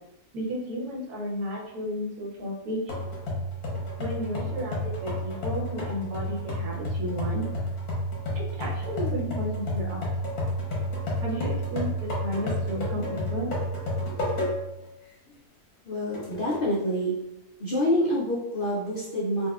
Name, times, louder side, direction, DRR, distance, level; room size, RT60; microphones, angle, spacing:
voice 1, 0.3-2.8 4.0-7.4 8.3-10.1 11.2-13.5, equal, 90° right, -2 dB, 1.3 m, -33 dB
sound 1, 2.9-14.8 15.3-15.4 16.1-16.7, equal, 80° left, 1.4 m, -31 dB
voice 2, 15.9-17.1 17.6-19.5, equal, 55° left, -6 dB, 0.6 m, -27 dB
4.1 x 2.3 x 2.3 m, 0.87 s
omnidirectional pair, 1.6 m